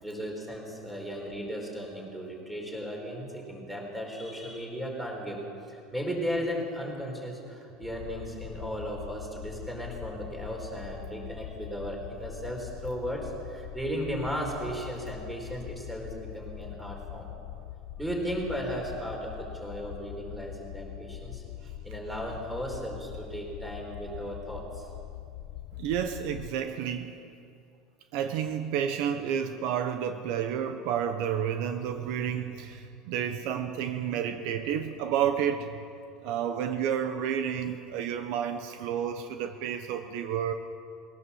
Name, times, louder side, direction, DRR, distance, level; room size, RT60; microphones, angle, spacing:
voice 1, 0.0-5.4 5.7-17.3 18.0-21.4 21.8-24.9, equal, 5° right, 0 dB, 4.3 m, -36 dB
sound 1, 7.8-26.5, left 13 dB, 50° left, 0.7 m, -43 dB
voice 2, 25.8-27.2 28.1-35.8 36.2-40.5, right 9 dB, 60° right, 7 dB, 1.1 m, -30 dB
21.0 x 18.0 x 7.2 m, 2.5 s
cardioid pair, 160°, 0 cm